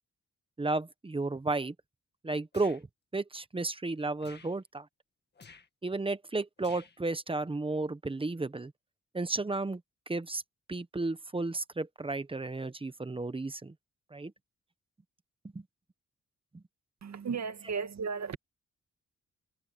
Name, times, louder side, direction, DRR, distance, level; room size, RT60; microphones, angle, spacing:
voice 1, 0.6-1.7 2.2-2.9 3.1-4.9 5.8-8.7 9.1-9.8 10.1-10.4 10.7-13.7 14.1-14.3 15.5-15.6 16.5-16.6, right 3 dB, 20° right, 0.9 m, -33 dB
sound 1, 2.5-2.8 4.2-4.6 5.3-5.7 6.6-7.0, left 5 dB, 35° left, 1.7 m, -53 dB
voice 2, 17.0-18.4, right 5 dB, 65° right, 1.9 m, -35 dB
wide cardioid pair, 130°, 30 cm